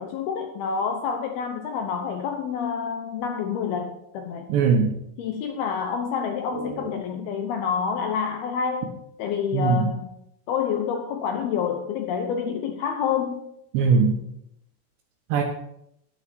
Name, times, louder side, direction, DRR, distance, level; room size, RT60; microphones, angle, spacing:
voice 1, 0.0-4.5 5.2-8.9 9.2-10.1 10.5-13.4, left 7 dB, 75° left, 4 dB, 2.5 m, -28 dB
voice 2, 4.5-5.0 6.5-6.9 9.5-9.9 13.7-14.2 15.3-15.4, right 5 dB, 75° right, 2 dB, 3.2 m, -21 dB
9.8 x 9.5 x 6.1 m, 0.77 s
omnidirectional pair, 5.2 m